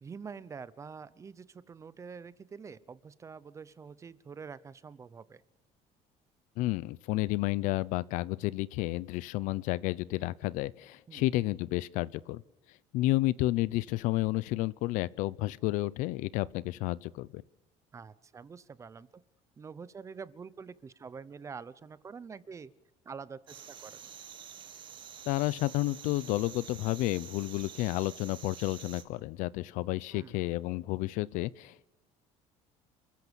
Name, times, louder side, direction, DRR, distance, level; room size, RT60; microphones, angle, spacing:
voice 1, 0.0-5.4 11.1-11.3 17.9-19.2 19.6-22.7 23.0-24.0 30.1-30.3, right 5 dB, 25° right, 17 dB, 0.8 m, -46 dB
voice 2, 6.6-12.4 12.9-17.4 25.3-31.9, left 18 dB, 75° left, 20 dB, 0.7 m, -31 dB
sound 1, 23.5-29.0, right 8 dB, 40° right, 1.9 m, -48 dB
29.0 x 14.5 x 7.0 m, 0.97 s
cardioid pair, 145°, 13 cm